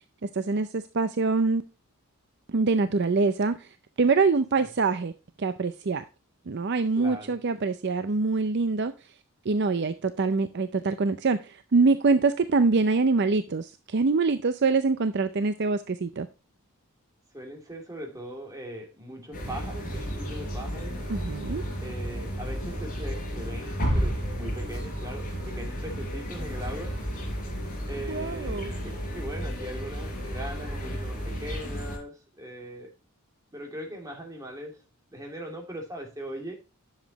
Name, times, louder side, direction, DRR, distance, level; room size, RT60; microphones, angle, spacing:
voice 1, 0.3-1.6 2.5-3.7 4.0-5.1 5.4-6.0 6.5-8.9 9.5-16.3 21.1-21.6 28.1-28.7, right 4 dB, 50° right, 0.5 m, -24 dB
voice 2, 6.9-7.4 17.3-21.0 21.8-27.0 27.9-32.9 33.5-34.8 35.1-36.5, equal, 15° right, 2.7 m, -40 dB
sound 1, 19.3-32.0, equal, 40° left, 4.4 m, -32 dB
10.5 x 7.3 x 3.0 m
head